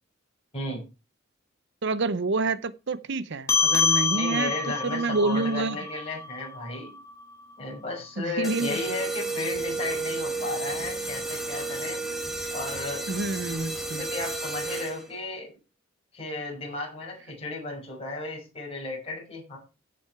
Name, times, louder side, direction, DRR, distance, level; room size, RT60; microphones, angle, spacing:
voice 1, 0.5-0.9 4.1-7.0 7.6-12.0 12.5-13.1 13.8-15.5 16.1-19.6, left 2 dB, 30° left, 6.1 m, -34 dB
voice 2, 1.8-4.5 4.8-5.8 8.2-8.8 13.1-14.0, right 3 dB, 60° right, 0.7 m, -28 dB
sound 1, 3.5-8.3, left 4 dB, 15° left, 2.2 m, -28 dB
sound 2, 8.4-15.2, right 3 dB, ahead, 2.2 m, -32 dB
16.0 x 6.3 x 4.7 m
head